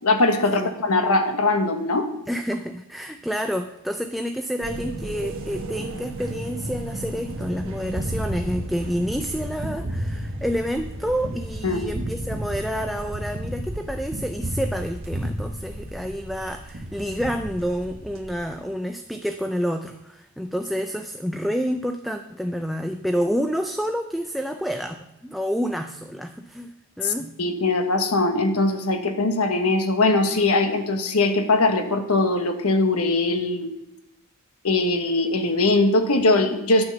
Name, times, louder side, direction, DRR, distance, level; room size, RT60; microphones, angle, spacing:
voice 1, 0.0-2.1 11.6-11.8 27.0-27.1 27.4-33.7 34.6-36.8, left 2 dB, 75° left, 7 dB, 1.2 m, -21 dB
voice 2, 2.3-27.4, equal, ahead, 5 dB, 0.4 m, -29 dB
sound 1, 4.6-18.5, right 1 dB, 60° right, 1.3 m, -36 dB
Gunshot gunfire, 6.6-16.3 16.7-18.2, right 1 dB, 45° right, 1.0 m, -33 dB
9.7 x 5.9 x 6.8 m, 0.89 s
head